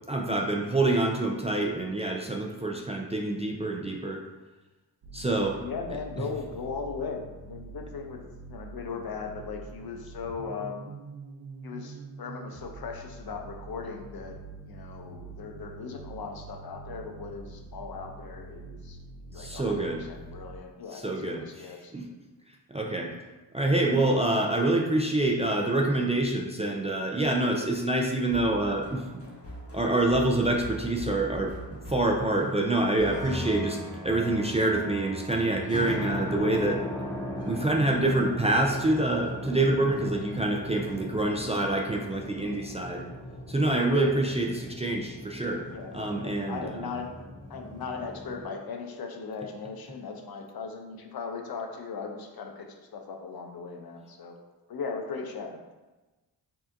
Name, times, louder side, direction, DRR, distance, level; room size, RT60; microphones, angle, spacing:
voice 1, 0.1-4.2 5.1-5.6 19.4-20.1 20.9-22.0 22.7-23.1 23.5-29.2 29.7-31.5 31.9-33.8 34.0-36.8 37.5-43.0 43.5-45.7 45.9-46.9, right 2 dB, 15° right, 0 dB, 0.4 m, -26 dB
sound 1, 5.0-20.6, right 3 dB, 55° right, 0.8 m, -45 dB
voice 2, 5.6-8.2 8.5-10.9 11.6-14.4 14.6-19.0 19.3-21.9 43.9-44.1 45.7-47.1 47.5-54.4 54.7-55.7, left 5 dB, 55° left, 3 dB, 0.6 m, -38 dB
sound 2, 28.2-33.2, right 1 dB, 30° left, 1.3 m, -42 dB
sound 3, 32.9-48.4, equal, 10° left, 1.3 m, -38 dB
4.8 x 2.8 x 2.5 m, 1.1 s
cardioid pair, 55°, 45 cm